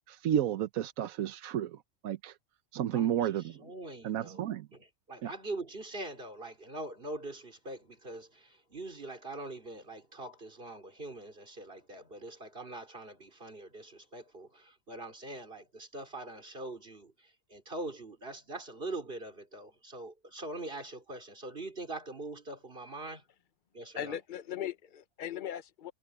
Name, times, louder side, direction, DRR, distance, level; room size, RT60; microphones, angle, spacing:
voice 1, 0.1-2.3 2.7-3.6 4.0-4.7 5.2-5.3, right 10 dB, 80° right, 1.2 m, -32 dB
voice 2, 2.9-4.4 4.7-23.2 23.7-24.2, right 2 dB, 40° right, 4.2 m, -43 dB
voice 3, 24.0-25.9, left 10 dB, 40° left, 0.9 m, -38 dB
omnidirectional pair, 1.4 m